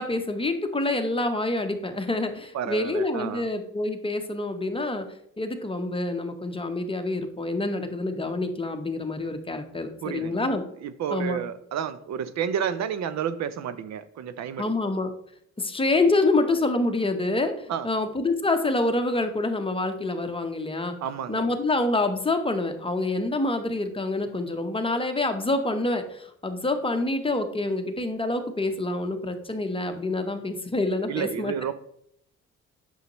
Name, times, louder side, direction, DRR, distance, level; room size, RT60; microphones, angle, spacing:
voice 1, 0.0-5.0 5.4-10.6 11.1-11.4 14.6-15.1 15.6-20.9 21.3-31.5, left 2 dB, 20° left, 6 dB, 0.9 m, -27 dB
voice 2, 2.5-3.5 10.0-10.4 10.8-14.7 17.7-17.9 21.0-21.5 31.1-31.7, right 8 dB, 65° right, 13 dB, 0.5 m, -30 dB
8.1 x 6.4 x 3.0 m, 0.71 s
cardioid pair, 90°, 30 cm